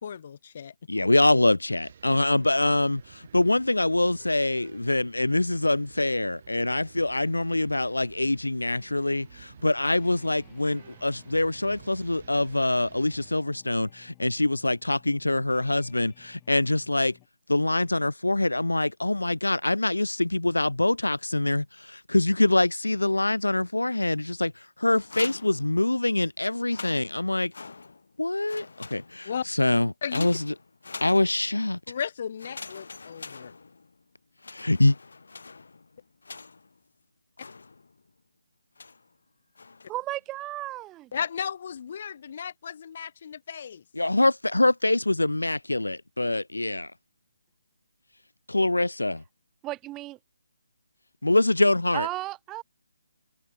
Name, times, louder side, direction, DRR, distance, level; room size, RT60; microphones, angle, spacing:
voice 1, 0.0-0.7 29.2-29.4 30.0-30.3 31.9-33.5 41.1-43.8, left 7 dB, 40° left, 1.8 m, -35 dB
voice 2, 0.9-17.2 17.5-24.5 24.8-27.5 28.2-30.5 31.0-31.8 34.5-35.0 43.9-46.9 48.5-49.2 51.2-52.1, left 2 dB, 75° left, 0.7 m, -24 dB
sound 1, 1.8-13.4, right 8 dB, 40° right, 5.1 m, -52 dB
sound 2, 8.6-17.3, left 33 dB, 15° left, 4.8 m, -58 dB
sound 3, 24.9-26.2 26.6-28.2 28.4-29.4 30.1-31.7 32.4-34.0 34.4-36.8 37.4-38.1 38.8-39.1 39.5-40.0, left 4 dB, 55° left, 5.3 m, -44 dB
voice 3, 39.9-41.1 49.6-50.2 51.9-52.6, right 16 dB, 15° right, 0.8 m, -34 dB
figure-of-eight pair, 145°, 0 cm